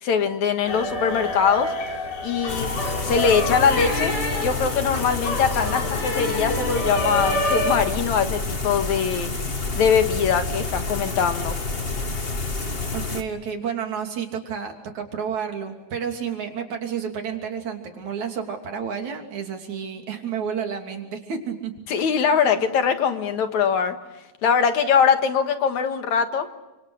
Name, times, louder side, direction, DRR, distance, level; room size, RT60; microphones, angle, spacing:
voice 1, 0.0-1.7 2.2-2.7 3.0-4.1 4.4-9.3 9.8-11.5 21.9-24.0 24.4-26.5, left 6 dB, 60° left, 7 dB, 2.7 m, -22 dB
sound 1, 0.7-7.7, left 1 dB, 80° left, 7.2 m, -27 dB
sound 2, 2.5-13.2, left 3 dB, 35° left, 0.8 m, -29 dB
voice 2, 12.9-21.7, right 7 dB, 55° right, 3 dB, 4.2 m, -30 dB
29.5 x 26.5 x 6.5 m, 0.99 s
omnidirectional pair, 4.1 m